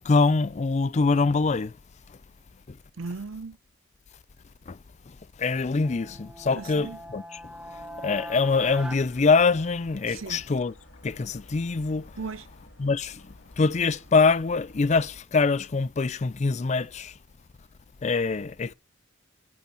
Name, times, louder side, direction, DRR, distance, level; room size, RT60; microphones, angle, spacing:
voice 1, 0.1-1.7 5.4-7.2 8.0-10.7 11.0-12.0 12.8-13.1 13.6-17.1 18.0-18.7, left 4 dB, 35° left, 0.4 m, -24 dB
voice 2, 3.0-3.6 6.6-7.0 10.1-10.4 12.2-12.5, right 4 dB, 80° right, 0.6 m, -36 dB
sound 1, 5.8-10.1, right 1 dB, 5° right, 0.9 m, -42 dB
sound 2, 8.5-15.2, left 1 dB, 60° left, 2.2 m, -52 dB
10.5 x 4.2 x 7.5 m
head